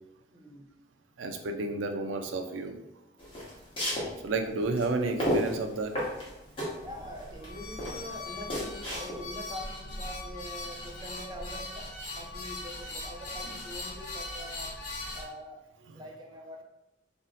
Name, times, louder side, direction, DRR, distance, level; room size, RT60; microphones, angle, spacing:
voice 1, 0.3-0.7 6.8-11.9 12.2-14.7 15.1-15.6 15.9-16.6, equal, 20° right, 0 dB, 0.5 m, -44 dB
voice 2, 1.2-2.8 4.2-6.0 15.8-16.0, right 3 dB, 80° right, 6 dB, 0.4 m, -31 dB
sound 1, 3.2-9.5, equal, 30° left, 1.0 m, -33 dB
sound 2, 6.8-15.2, left 2 dB, 90° left, 1.0 m, -40 dB
2.7 x 2.1 x 3.9 m, 0.93 s
head